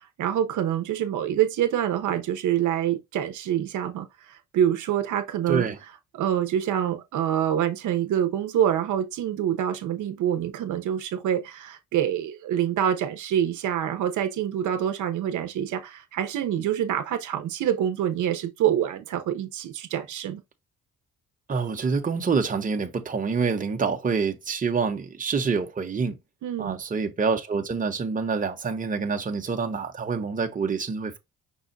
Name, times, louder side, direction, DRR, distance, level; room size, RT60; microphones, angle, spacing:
voice 1, 0.2-5.7 6.1-20.4 26.4-26.8, right 10 dB, 80° right, 1.0 m, -26 dB
voice 2, 21.5-26.1 26.6-31.2, right 5 dB, 25° right, 1.0 m, -26 dB
5.5 x 2.4 x 4.0 m
cardioid pair, 90°, 30 cm